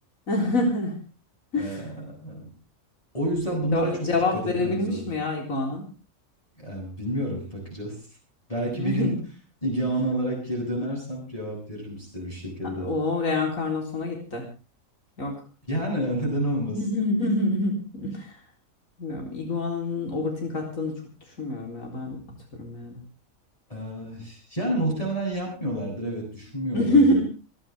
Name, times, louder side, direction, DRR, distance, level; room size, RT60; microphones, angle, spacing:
voice 1, 0.3-1.0 1.5-1.9 3.7-5.8 8.7-9.2 12.8-14.4 15.2-15.4 16.6-18.4 19.0-21.0 21.3-22.2 22.5-23.0 26.7-27.2, left 2 dB, 70° left, 1 dB, 4.3 m, -26 dB
voice 2, 1.5-2.5 3.1-5.0 6.6-8.0 8.5-9.1 9.6-12.9 15.7-16.8 23.7-27.1, right 1 dB, 25° left, -1 dB, 8.2 m, -29 dB
29.0 x 11.5 x 3.4 m, 0.32 s
omnidirectional pair, 1.4 m